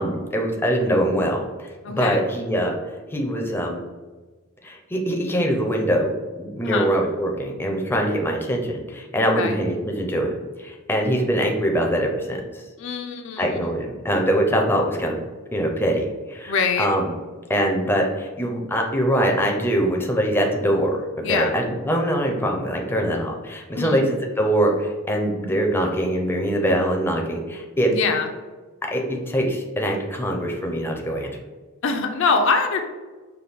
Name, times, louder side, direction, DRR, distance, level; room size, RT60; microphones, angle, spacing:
voice 1, 0.0-2.8 3.1-3.8 4.6-6.1 6.4-12.6 13.4-15.2 15.5-17.1 17.5-21.0 21.3-27.9 28.9-31.3, equal, 10° left, 1 dB, 0.5 m, -23 dB
voice 2, 1.8-2.2 6.6-6.9 9.3-9.6 12.8-13.5 16.5-16.9 21.2-21.6 23.7-24.0 27.9-28.3 31.8-32.8, left 4 dB, 65° left, 5 dB, 0.4 m, -23 dB
5.6 x 2.2 x 3.4 m, 1.3 s
head